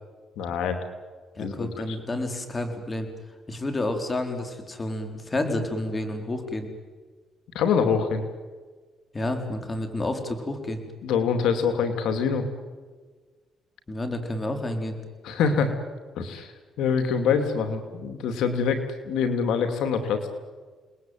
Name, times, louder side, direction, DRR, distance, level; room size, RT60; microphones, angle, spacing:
voice 1, 0.4-0.8 1.4-2.0 7.5-8.2 11.0-12.4 15.2-15.7 16.1-16.5 16.8-20.3, left 6 dB, 85° left, 7 dB, 2.7 m, -25 dB
voice 2, 1.3-3.1 3.5-6.7 9.1-10.8 13.9-15.0, left 1 dB, 25° left, 6 dB, 4.3 m, -30 dB
29.0 x 20.5 x 9.3 m, 1.4 s
cardioid pair, 90°, 0 cm